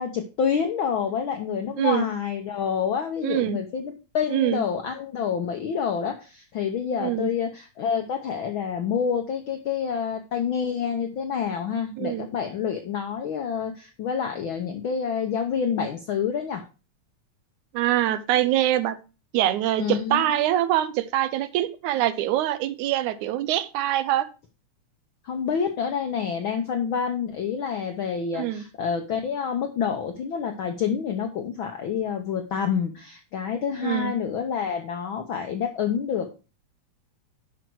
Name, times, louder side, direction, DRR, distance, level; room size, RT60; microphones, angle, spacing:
voice 1, 0.0-16.6 19.8-20.4 25.2-36.4, left 7 dB, 75° left, 5 dB, 1.1 m, -28 dB
voice 2, 3.2-3.6 4.3-4.6 7.0-7.3 12.0-12.3 17.7-19.0 19.3-24.3 28.4-28.6 33.8-34.1, right 13 dB, 85° right, 13 dB, 2.2 m, -24 dB
10.5 x 5.2 x 4.6 m, 0.32 s
omnidirectional pair, 3.4 m